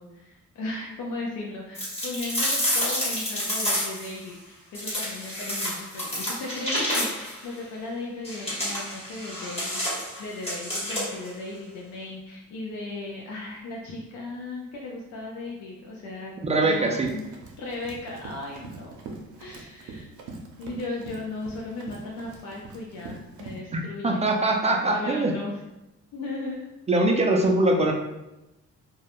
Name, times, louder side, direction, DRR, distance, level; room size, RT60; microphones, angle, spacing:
voice 1, 0.0-17.3 17.6-19.0 19.4-20.2 20.6-24.3 24.9-25.6 26.1-26.7, left 2 dB, 70° left, -2 dB, 0.5 m, -36 dB
sound 1, 1.7-4.1 4.7-7.4 8.2-11.3, equal, 20° left, 1.1 m, -29 dB
voice 2, 16.4-17.1 24.0-25.3 26.9-27.9, right 2 dB, 25° right, 1 dB, 0.3 m, -22 dB
Run, 16.7-23.6, right 3 dB, 75° right, 0.6 m, -43 dB
2.3 x 2.1 x 2.9 m, 0.94 s
cardioid pair, 90°, 30 cm